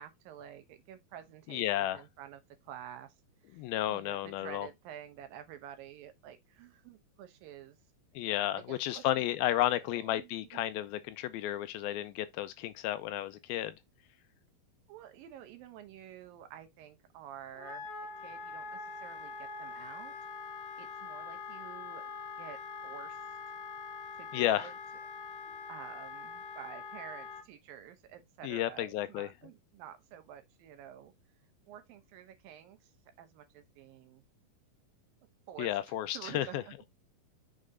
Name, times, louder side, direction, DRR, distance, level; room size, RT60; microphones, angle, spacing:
voice 1, 0.0-3.1 3.5-7.8 8.6-9.1 9.5-10.6 14.9-17.9 18.2-20.2 20.4-23.4 24.2-24.7 25.7-31.1 31.7-32.9 33.2-34.2 35.5-36.9, right 10 dB, 75° right, 2.5 m, -50 dB
voice 2, 1.5-2.0 3.5-4.7 8.2-13.7 24.3-24.7 28.4-29.3 35.6-36.6, left 13 dB, 80° left, 2.4 m, -32 dB
Wind instrument woodwind instrument, 17.5-27.4, left 5 dB, 60° left, 1.9 m, -44 dB
6.5 x 4.2 x 3.6 m
omnidirectional pair, 4.3 m